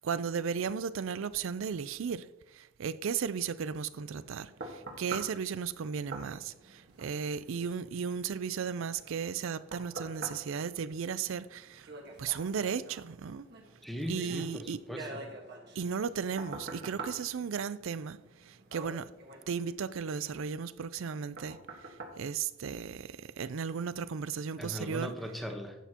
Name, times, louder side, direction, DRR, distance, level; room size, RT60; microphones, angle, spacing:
voice 1, 0.0-2.3 2.5-11.9 12.2-13.4 14.1-14.8 15.8-19.1 19.5-21.6 22.2-25.1, right 6 dB, 70° right, 0.4 m, -35 dB
sound 1, 3.9-23.2 23.7-23.8, right 3 dB, 50° right, 1.5 m, -47 dB
voice 2, 13.8-15.2 24.6-25.8, equal, ahead, 1.0 m, -39 dB
11.0 x 8.1 x 2.9 m
head